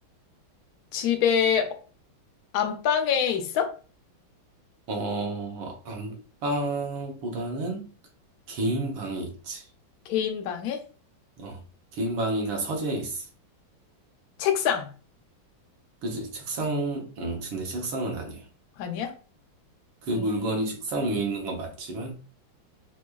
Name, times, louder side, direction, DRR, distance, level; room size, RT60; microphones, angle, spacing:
voice 1, 0.9-1.8 2.5-3.7 10.1-10.8 14.4-14.9 18.8-19.1 20.1-20.2, left 8 dB, 75° left, 0.8 m, -25 dB
voice 2, 4.9-7.9 8.5-9.7 11.4-11.6 11.9-13.3 16.0-18.4 20.0-22.1, right 2 dB, 80° right, 1.7 m, -30 dB
4.7 x 2.3 x 2.2 m
omnidirectional pair, 2.2 m